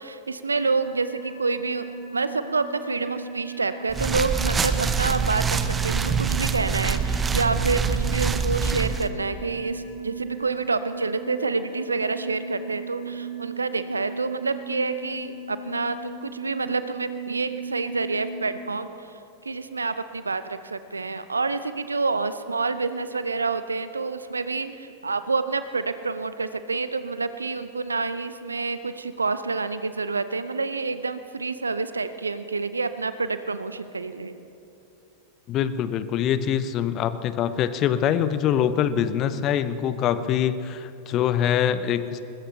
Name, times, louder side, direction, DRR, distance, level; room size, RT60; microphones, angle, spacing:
voice 1, 0.0-1.9 2.1-18.9 19.4-34.4, right 4 dB, 75° right, 12 dB, 0.7 m, -28 dB
sound 1, 0.6-18.4, right 3 dB, 75° left, 2.1 m, -38 dB
sound 2, 3.9-9.1, right 6 dB, 15° right, 0.8 m, -25 dB
voice 2, 35.5-42.2, left 9 dB, 35° left, 13 dB, 0.8 m, -24 dB
21.0 x 21.0 x 3.3 m, 2.7 s
figure-of-eight pair, 90°, 0 cm